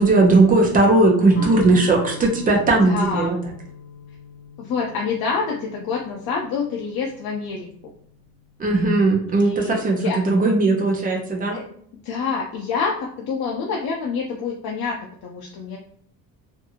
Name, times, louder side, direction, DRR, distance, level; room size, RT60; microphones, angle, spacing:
voice 1, 0.0-3.4 8.6-11.6, right 2 dB, 25° right, 1 dB, 0.5 m, -18 dB
Guitar, 1.3-7.3, left 2 dB, 50° left, 1.0 m, -39 dB
voice 2, 2.8-3.3 4.6-7.7 9.3-10.2 11.5-11.7 12.0-15.0 15.2-15.8, left 5 dB, 75° left, -1 dB, 0.5 m, -27 dB
2.6 x 2.5 x 2.7 m, 0.64 s
cardioid pair, 180°, 37 cm